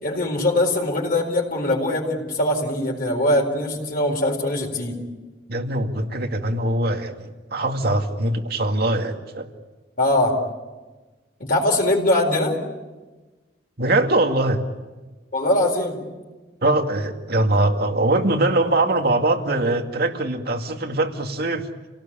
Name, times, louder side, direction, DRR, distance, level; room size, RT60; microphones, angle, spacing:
voice 1, 0.0-5.0 10.0-10.4 11.4-12.6 15.3-16.0, left 1 dB, 55° left, -2 dB, 4.4 m, -22 dB
voice 2, 5.5-9.5 13.8-14.6 16.6-21.7, right 2 dB, 60° right, 5 dB, 2.2 m, -22 dB
30.0 x 18.5 x 8.9 m, 1.2 s
head